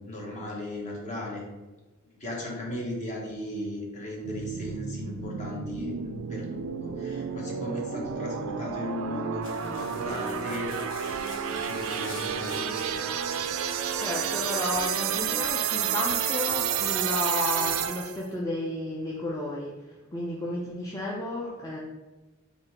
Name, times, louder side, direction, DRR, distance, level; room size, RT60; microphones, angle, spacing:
voice 1, 0.0-1.4 2.2-10.7 11.0-13.0, left 1 dB, 35° left, -2 dB, 1.1 m, -37 dB
sound 1, 4.2-18.2, right 8 dB, 65° right, 0.3 m, -30 dB
sound 2, 9.4-15.0, left 3 dB, 60° left, 0.8 m, -47 dB
voice 2, 14.0-21.8, left 2 dB, 15° left, -4 dB, 0.4 m, -32 dB
3.9 x 2.7 x 4.5 m, 1.2 s
head